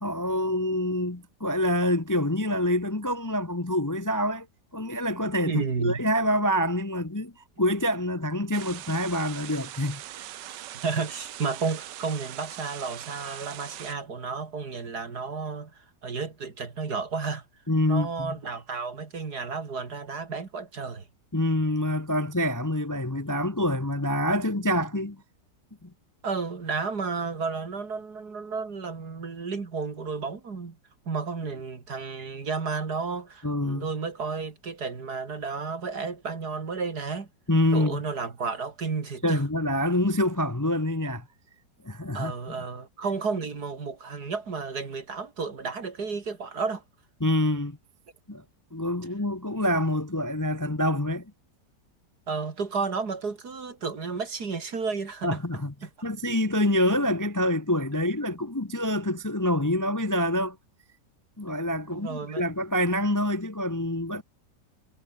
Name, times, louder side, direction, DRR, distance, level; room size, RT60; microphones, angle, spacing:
voice 1, 0.0-4.5 4.7-10.0 17.7-18.3 21.3-25.2 25.8-25.9 33.4-33.9 37.5-38.0 39.2-41.2 41.8-42.3 47.2-47.8 48.3-48.4 48.7-51.3 55.2-55.7 56.0-60.6 61.4-64.2, left 1 dB, 15° left, 0.9 m, -26 dB
voice 2, 5.5-6.0 10.8-15.7 16.0-17.4 17.9-21.0 26.2-30.8 31.1-37.3 37.7-39.4 42.1-46.8 52.3-55.4 55.8-55.9 61.9-62.4, right 4 dB, 60° right, 3.1 m, -32 dB
sound 1, 8.5-13.9, right 13 dB, 75° right, 1.4 m, -41 dB
omnidirectional pair, 1.9 m